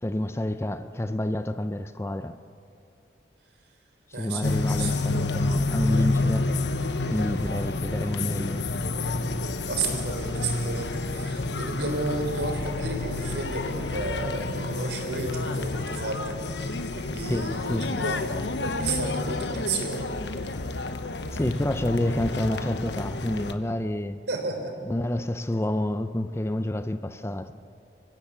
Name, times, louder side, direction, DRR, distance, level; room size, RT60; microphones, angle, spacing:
voice 1, 0.0-2.4 4.1-6.5 7.1-8.7 17.2-18.1 21.3-24.2 24.9-27.5, left 1 dB, 15° left, 11 dB, 0.5 m, -29 dB
voice 2, 4.1-5.0 9.7-18.2 18.8-20.1 24.3-24.7, right 3 dB, 80° right, 3 dB, 3.8 m, -32 dB
sound 1, 4.4-23.5, left 2 dB, 80° left, 1.1 m, -29 dB
26.0 x 16.0 x 7.3 m, 2.5 s
head